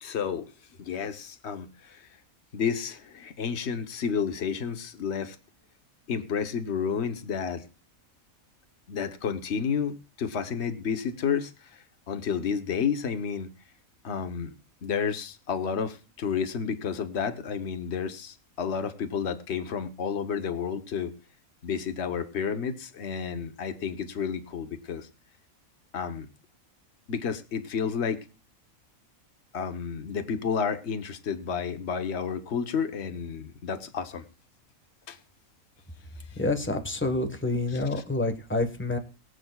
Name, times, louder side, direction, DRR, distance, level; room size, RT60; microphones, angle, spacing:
voice 1, 0.0-0.4 0.8-2.1 2.5-5.4 6.1-7.7 8.9-13.5 14.0-14.5 14.8-21.1 21.6-25.1 25.9-26.3 27.1-28.2 29.5-34.2 35.1-35.2 36.3-36.4 37.7-38.0, left 6 dB, 50° left, 9 dB, 1.3 m, -31 dB
voice 2, 36.4-39.0, left 2 dB, 10° left, 5 dB, 1.2 m, -28 dB
22.5 x 7.9 x 2.3 m, 0.35 s
omnidirectional pair, 1.5 m